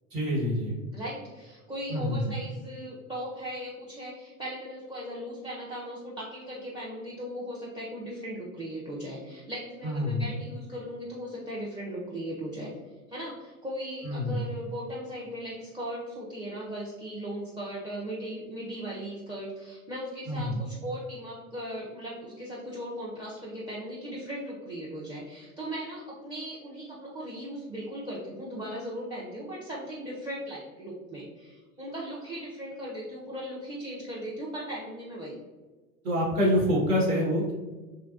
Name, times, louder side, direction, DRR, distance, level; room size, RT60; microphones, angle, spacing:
voice 1, 0.1-0.8 1.9-2.3 9.8-10.3 14.0-14.4 20.3-20.6 36.0-37.5, equal, 85° right, -5 dB, 1.4 m, -26 dB
voice 2, 0.9-12.8 13.1-35.4, equal, 10° right, -6 dB, 0.5 m, -38 dB
3.4 x 2.2 x 2.4 m, 1.3 s
hypercardioid pair, 85°, 42 cm